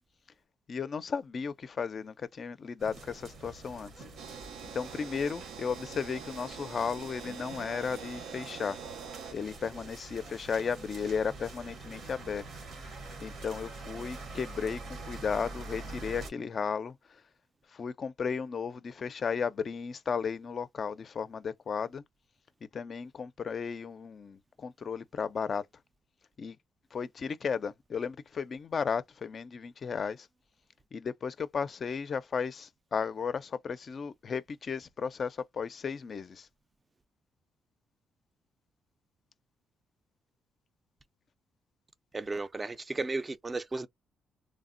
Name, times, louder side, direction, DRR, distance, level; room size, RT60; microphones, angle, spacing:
voice 1, 0.7-4.0 4.7-8.8 9.3-12.5 12.9-17.2 17.7-22.0 22.7-25.6 26.4-26.6 26.9-30.3 30.9-36.5, left 6 dB, 45° left, 0.4 m, -34 dB
sound 1, 2.8-16.3, right 3 dB, 65° right, 0.9 m, -45 dB
sound 2, 4.2-9.3, right 7 dB, 85° right, 0.4 m, -45 dB
voice 2, 42.1-43.9, right 3 dB, 25° right, 0.4 m, -34 dB
3.2 x 2.0 x 2.5 m
cardioid pair, 90°, 0 cm